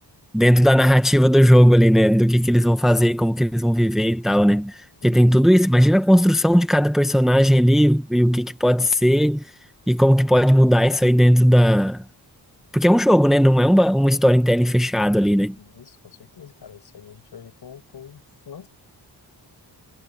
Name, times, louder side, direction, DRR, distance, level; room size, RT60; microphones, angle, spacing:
voice 1, 0.3-4.8 5.0-9.4 9.9-12.0 12.7-15.5, equal, ahead, 0.9 m, -16 dB
voice 2, 15.6-18.7, left 8 dB, 65° left, 5.9 m, -45 dB
wide cardioid pair, 155°, 42 cm